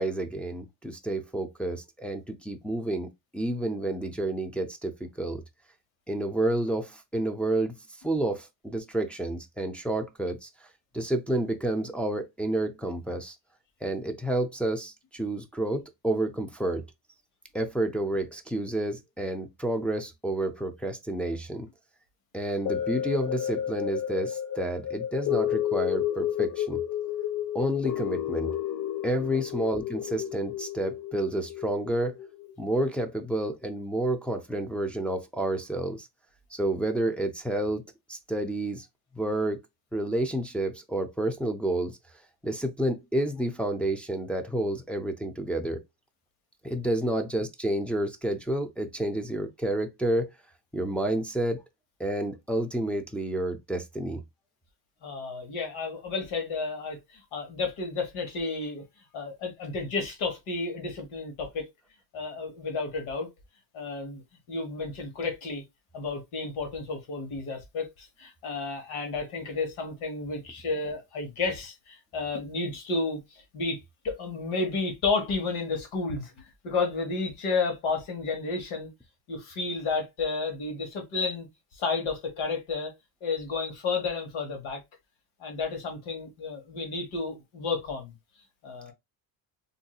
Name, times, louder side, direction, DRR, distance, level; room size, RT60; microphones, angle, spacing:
voice 1, 0.0-3.1 3.3-5.4 6.1-7.8 8.0-10.5 10.9-13.4 13.8-16.8 17.5-21.7 22.3-26.8 27.5-28.6 29.0-32.2 32.6-36.1 36.5-37.8 38.1-38.9 39.1-39.6 39.9-42.0 42.4-45.8 46.6-50.3 50.7-51.6 52.0-54.2, right 1 dB, 5° left, 0.4 m, -30 dB
sound 1, 22.7-33.0 33.5-33.6, left 11 dB, 45° left, 0.6 m, -31 dB
voice 2, 55.0-58.8 59.1-61.7 62.1-63.3 63.7-64.2 64.5-65.6 65.9-73.2 73.5-73.8 74.0-78.9 79.3-81.5 81.7-82.9 83.2-84.8 85.4-88.1 88.6-88.9, left 4 dB, 80° left, 1.5 m, -31 dB
3.8 x 2.7 x 2.3 m
cardioid pair, 95°, 47 cm